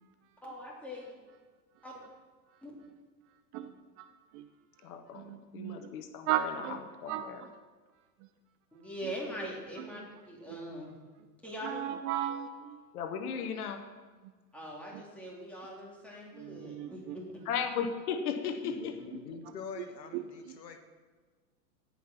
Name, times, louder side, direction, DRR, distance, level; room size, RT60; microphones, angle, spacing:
voice 1, 0.4-1.1 1.8-1.9 2.6-2.7 8.7-10.9 11.4-11.9 14.5-17.2, equal, 5° left, -4 dB, 3.5 m, -42 dB
voice 2, 3.5-4.1 4.3-4.5 5.1-5.9 6.3-7.5 9.0-9.1 9.8-9.9 10.5-10.6 11.6-12.8 14.9-15.0 16.3-17.2 18.8-18.9 19.8-19.9 20.1-20.2, right 11 dB, 35° right, 9 dB, 0.6 m, -36 dB
voice 3, 4.8-6.5 7.0-7.4 12.9-13.8 17.5-18.9, left 7 dB, 65° left, 8 dB, 1.2 m, -36 dB
voice 4, 18.6-20.8, left 5 dB, 80° left, 7 dB, 1.4 m, -45 dB
17.0 x 5.8 x 5.8 m, 1.4 s
hypercardioid pair, 105°, 49 cm